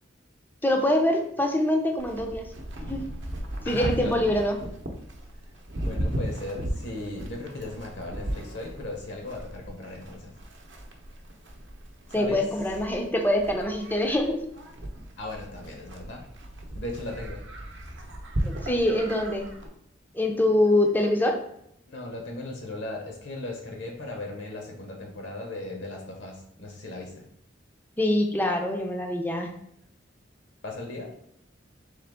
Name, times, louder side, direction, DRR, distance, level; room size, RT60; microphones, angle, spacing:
voice 1, 0.6-2.5 2.9-3.0 3.7-4.6 12.1-14.4 18.4-19.5 20.1-21.4 28.0-29.5, left 1 dB, 10° left, 3 dB, 0.4 m, -24 dB
Livestock farm animals working animals, 2.0-19.7, right 1 dB, 60° right, 0.7 m, -36 dB
voice 2, 3.6-4.2 5.8-10.3 12.1-12.5 15.2-16.2 16.7-17.4 21.9-27.3 30.6-31.1, left 2 dB, 60° left, 1 dB, 0.8 m, -37 dB
3.8 x 3.2 x 3.4 m, 0.73 s
head